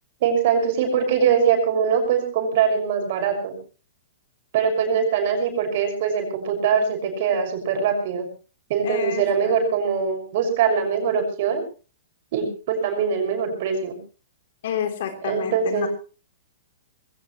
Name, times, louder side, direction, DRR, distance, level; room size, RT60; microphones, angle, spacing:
voice 1, 0.2-3.6 4.5-8.3 8.7-11.6 12.3-14.0 15.2-15.9, right 6 dB, 55° right, 4 dB, 6.2 m, -22 dB
voice 2, 8.8-9.5 14.6-15.9, left 9 dB, 60° left, 6 dB, 3.6 m, -29 dB
21.0 x 17.0 x 3.2 m, 0.35 s
hypercardioid pair, 120°, 0 cm